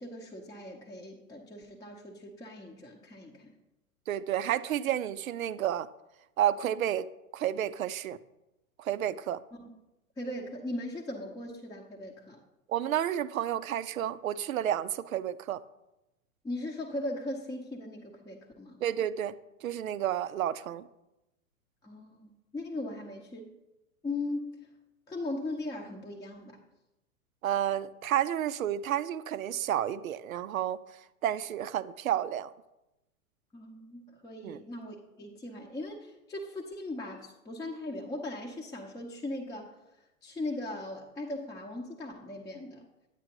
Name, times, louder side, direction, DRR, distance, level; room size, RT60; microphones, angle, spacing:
voice 1, 0.0-3.5 9.5-9.7 10.2-12.4 16.4-18.8 21.8-23.5 24.0-24.6 25.1-26.6 33.5-39.8 40.2-42.9, left 2 dB, 10° left, -1 dB, 0.7 m, -39 dB
voice 2, 4.1-5.9 6.4-7.1 7.3-8.2 8.8-9.4 12.7-15.6 18.8-19.3 19.6-20.9 27.4-30.8 31.2-32.5 34.4-34.6, right 11 dB, 70° right, 16 dB, 0.6 m, -30 dB
9.7 x 9.1 x 3.0 m, 0.95 s
figure-of-eight pair, 100°, 43 cm